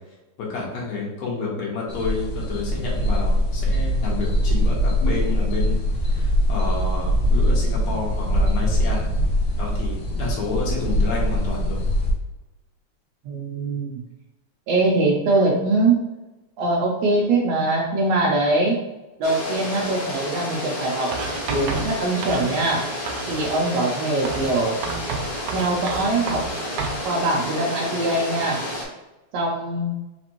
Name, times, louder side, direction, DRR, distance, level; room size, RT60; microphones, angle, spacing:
voice 1, 0.4-9.0 9.6-11.8, left 3 dB, 70° left, -3 dB, 2.2 m, -29 dB
sound 1, 1.9-12.1, equal, 85° left, 1.0 m, -22 dB
voice 2, 13.2-14.0 14.7-16.0 16.6-18.8 19.2-21.2 21.5-22.9 23.3-24.8 25.5-26.5 27.0-28.6 29.3-29.9, right 2 dB, 75° right, -1 dB, 1.6 m, -22 dB
sound 2, 19.2-28.8, left 1 dB, 40° left, 1.0 m, -31 dB
Writing, 21.1-22.8 23.1-23.6 24.2-27.0, right 4 dB, 90° right, 2.0 m, -31 dB
5.2 x 3.3 x 2.9 m, 1.1 s
omnidirectional pair, 3.3 m